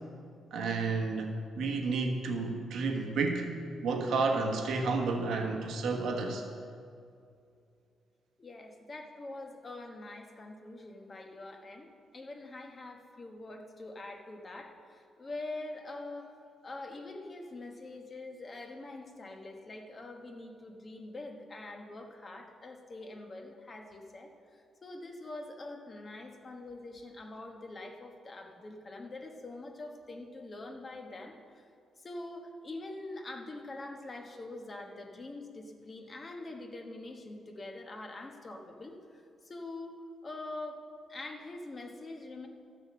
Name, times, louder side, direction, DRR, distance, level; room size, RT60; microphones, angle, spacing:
voice 1, 0.5-3.5 3.8-6.4, right 3 dB, 65° right, 3 dB, 1.3 m, -31 dB
voice 2, 8.4-11.9 12.1-16.4 16.6-31.7 32.0-40.8 41.1-42.5, left 2 dB, 25° left, 3 dB, 1.1 m, -44 dB
13.0 x 6.7 x 7.3 m, 2.4 s
cardioid pair, 170°, 0 cm